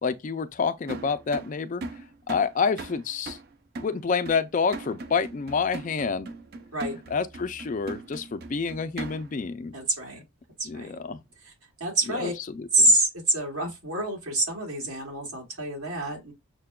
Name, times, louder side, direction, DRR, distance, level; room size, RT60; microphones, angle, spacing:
voice 1, 0.0-1.8 2.3-3.4 3.8-6.3 7.1-9.7 10.7-11.2 12.1-12.3 12.6-12.7, left 5 dB, 35° left, 0.3 m, -28 dB
sound 1, 0.9-9.5, right 3 dB, 45° right, 0.4 m, -40 dB
voice 2, 9.7-10.2 10.6-10.9 11.5-11.6 11.8-12.3 12.7-16.3, right 1 dB, 85° right, 1.9 m, -26 dB
6.5 x 2.2 x 2.2 m
head